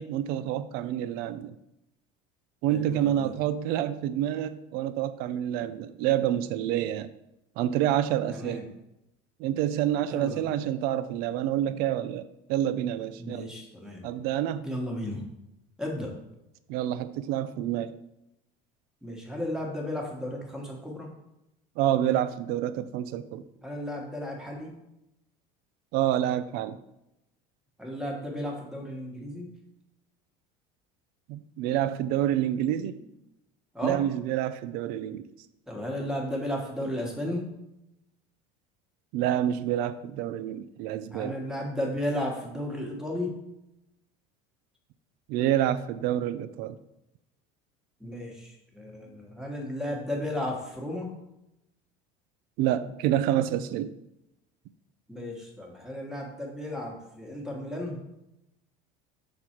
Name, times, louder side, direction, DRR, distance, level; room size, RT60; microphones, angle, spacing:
voice 1, 0.0-1.5 2.6-7.1 7.6-8.6 9.4-13.5 14.0-14.7 16.7-17.9 21.8-23.4 25.9-26.8 31.3-33.0 33.8-35.2 39.1-41.4 45.3-46.8 52.6-53.9, right 11 dB, 65° right, 13 dB, 0.5 m, -28 dB
voice 2, 2.7-3.3 8.3-8.7 10.1-10.4 13.2-14.1 14.6-15.3 15.8-16.1 19.0-21.1 23.6-24.7 27.8-29.5 33.0-33.1 33.7-34.0 35.7-37.5 41.1-43.3 48.0-51.1 55.1-58.0, left 1 dB, 5° right, 0 dB, 1.3 m, -34 dB
6.1 x 3.9 x 4.4 m, 0.87 s
cardioid pair, 130°, 17 cm